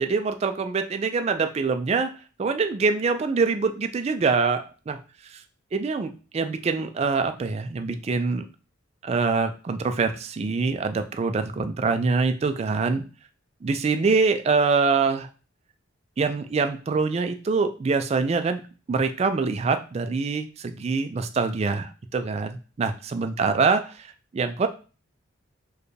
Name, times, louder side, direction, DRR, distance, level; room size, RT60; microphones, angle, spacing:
voice 1, 0.0-2.1 2.4-5.0 5.3-5.4 5.7-8.5 9.0-13.0 13.6-15.3 16.2-18.6 18.9-24.7, right 4 dB, 30° right, 8 dB, 0.3 m, -24 dB
4.5 x 2.2 x 3.2 m, 0.36 s
head